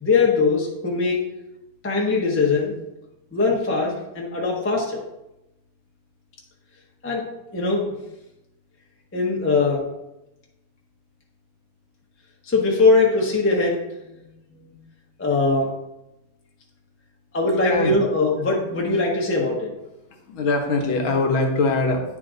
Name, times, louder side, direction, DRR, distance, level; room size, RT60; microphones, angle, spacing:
voice 1, 0.0-1.2 1.8-2.7 3.3-5.0 7.0-7.2 7.5-7.8 9.1-9.8 12.4-14.2 14.5-14.7 15.2-15.7 17.3-19.7, left 3 dB, 10° left, -2 dB, 0.6 m, -21 dB
voice 2, 17.6-18.0 20.3-22.0, left 3 dB, 70° left, 2 dB, 1.7 m, -22 dB
10.0 x 3.8 x 3.8 m, 0.92 s
omnidirectional pair, 2.4 m